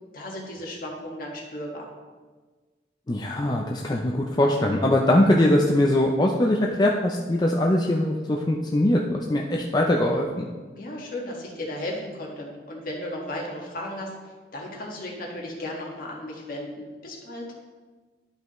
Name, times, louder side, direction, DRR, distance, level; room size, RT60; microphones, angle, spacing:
voice 1, 0.1-1.9 10.7-14.1 14.5-17.4, left 1 dB, 55° left, -2 dB, 1.7 m, -35 dB
voice 2, 3.1-10.5, left 1 dB, 25° left, 0 dB, 0.5 m, -22 dB
12.0 x 5.4 x 3.1 m, 1.4 s
head